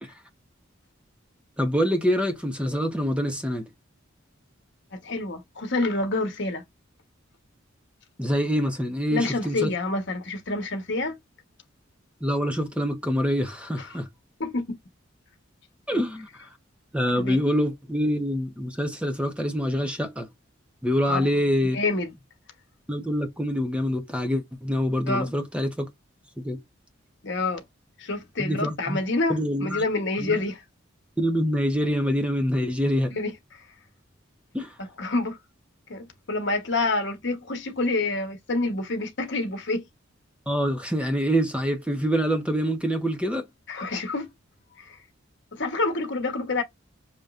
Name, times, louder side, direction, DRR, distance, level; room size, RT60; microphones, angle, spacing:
voice 1, 1.6-3.7 8.2-9.7 12.2-14.1 15.9-16.5 16.9-20.3 20.8-21.8 22.9-25.9 26.4-26.6 28.4-29.0 29.3-29.8 30.2-30.4 31.2-33.1 34.5-34.7 40.5-43.4, equal, 5° right, 0.9 m, -25 dB
voice 2, 4.9-6.6 9.1-11.2 13.8-13.9 14.4-14.8 17.1-17.4 21.1-21.3 21.7-22.1 25.1-25.3 27.2-27.6 28.0-30.6 33.1-33.6 35.0-35.4 35.9-39.9 43.7-44.3 44.8-45.0 45.5-46.6, left 2 dB, 60° left, 1.2 m, -27 dB
6.7 x 3.0 x 2.5 m
head